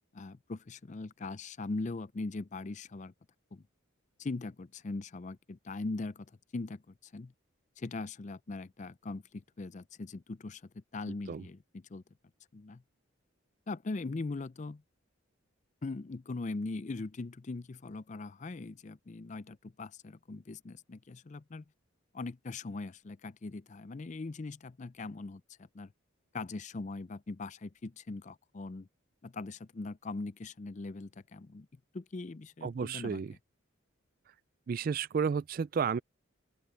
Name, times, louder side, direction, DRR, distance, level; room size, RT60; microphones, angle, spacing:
voice 1, 0.1-3.1 3.5-3.6 4.2-6.3 6.5-7.3 7.8-12.0 12.5-12.8 13.7-14.8 15.8-21.6 22.1-25.4 25.7-25.9 26.3-28.9 29.2-31.7 31.9-33.2, left 3 dB, 35° left, 0.4 m, -40 dB
voice 2, 11.1-11.4 32.6-33.3 34.7-36.0, right 6 dB, 45° right, 0.3 m, -32 dB
open air
head